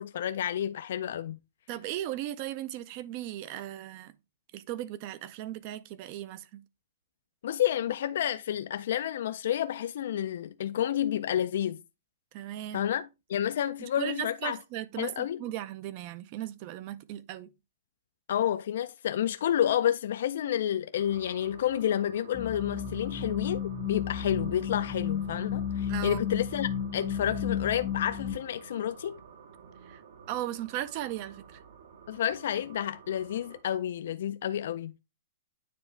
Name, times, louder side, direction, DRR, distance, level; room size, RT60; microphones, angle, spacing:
voice 1, 0.0-1.4 7.4-11.8 12.7-14.6 15.0-15.4 18.3-29.2 32.1-35.0, left 10 dB, 55° left, 0.3 m, -30 dB
voice 2, 1.7-4.1 4.5-6.6 12.3-12.8 14.0-17.5 25.9-26.2 29.9-30.0 30.3-31.6, right 13 dB, 30° right, 0.5 m, -37 dB
sound 1, 21.0-33.6, right 6 dB, 55° right, 1.0 m, -51 dB
sound 2, 22.3-28.3, left 8 dB, 15° left, 0.7 m, -33 dB
9.3 x 3.5 x 3.2 m
hypercardioid pair, 175°, 0 cm